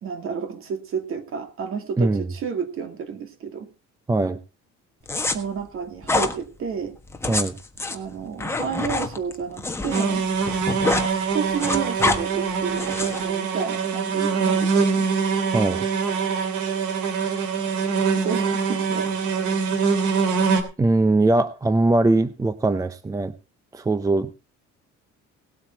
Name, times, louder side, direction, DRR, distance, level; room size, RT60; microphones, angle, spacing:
voice 1, 0.0-3.7 5.3-6.9 7.9-10.3 11.3-15.1 18.2-19.3, right 6 dB, 45° right, 7 dB, 2.5 m, -31 dB
voice 2, 2.0-2.3 4.1-4.4 7.3-7.6 15.5-15.9 20.8-23.3 23.7-24.4, right 2 dB, 10° right, 13 dB, 0.5 m, -21 dB
sound 1, 5.1-5.4 6.0-6.3 7.1-10.0 10.3-11.1 11.4-12.2 12.8-13.2, left 3 dB, 10° left, 1.4 m, -25 dB
sound 2, 9.9-20.6, right 5 dB, 85° right, 3.1 m, -24 dB
18.5 x 8.5 x 4.6 m, 0.32 s
cardioid pair, 160°, 29 cm